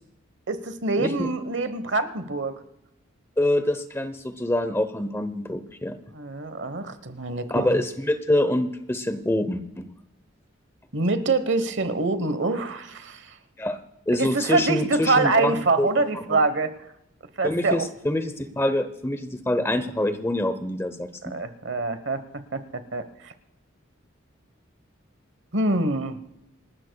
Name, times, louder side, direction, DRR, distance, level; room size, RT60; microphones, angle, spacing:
voice 1, 0.5-2.6 6.1-7.6 10.9-13.3 14.2-16.7 17.4-17.9 21.2-23.3 25.5-26.2, right 3 dB, 60° right, 12 dB, 1.1 m, -25 dB
voice 2, 1.0-1.3 3.4-6.0 7.5-9.9 13.6-13.8 14.1-16.4 17.4-21.3, left 1 dB, 10° left, 11 dB, 0.7 m, -26 dB
27.5 x 13.0 x 2.3 m, 0.87 s
head